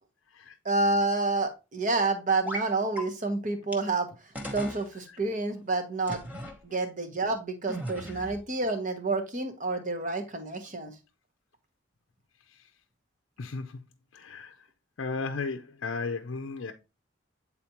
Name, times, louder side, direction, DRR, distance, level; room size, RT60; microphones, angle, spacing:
voice 1, 0.6-4.1 4.5-6.3 6.6-10.9, right 3 dB, 40° right, 1.1 m, -29 dB
sound 1, 2.5-2.7 3.0-3.1 3.7-3.8 4.4-4.8 6.1-6.6 7.7-8.4, equal, 10° right, 0.9 m, -36 dB
voice 2, 14.1-14.5 15.0-16.7, left 4 dB, 70° left, 0.5 m, -34 dB
8.5 x 4.2 x 2.9 m
head